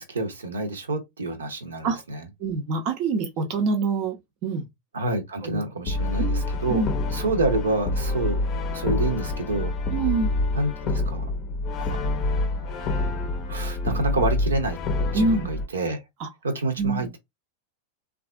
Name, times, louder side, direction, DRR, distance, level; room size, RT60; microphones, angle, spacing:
voice 1, 0.0-2.3 4.9-6.8 7.1-8.4 8.7-9.7 10.5-11.3 11.9-12.8 13.5-14.8 15.1-16.0 16.4-17.2, right 2 dB, 70° right, 0.7 m, -28 dB
voice 2, 2.4-4.2 4.4-4.7 5.4-5.6 6.2-6.4 6.7-6.9 9.9-10.3 15.1-15.5 16.2-16.3 16.8-17.1, right 4 dB, 40° right, 0.6 m, -25 dB
Brass instrument, 5.9-15.7, left 2 dB, 35° left, 0.6 m, -27 dB
3.3 x 2.4 x 2.4 m
figure-of-eight pair, 90°, 0 cm